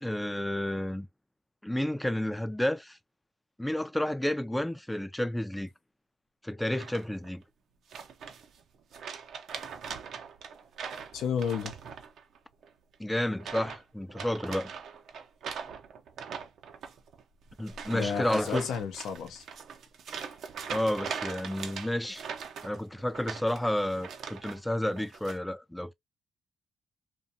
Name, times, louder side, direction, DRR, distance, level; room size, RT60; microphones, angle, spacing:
voice 1, 0.0-1.1 1.6-3.0 3.6-5.7 6.4-7.4 13.0-14.7 17.6-18.7 20.7-22.2 22.6-25.9, left 1 dB, 5° left, 0.4 m, -31 dB
sound 1, 6.7-7.3 7.9-8.6 8.9-12.4 12.6-12.9 13.4-13.8 14.1-24.6 24.9-25.4, right 6 dB, 65° right, 0.5 m, -41 dB
voice 2, 11.1-11.7 17.9-19.4, left 7 dB, 80° left, 0.5 m, -32 dB
2.5 x 2.2 x 2.7 m
cardioid pair, 90°, 0 cm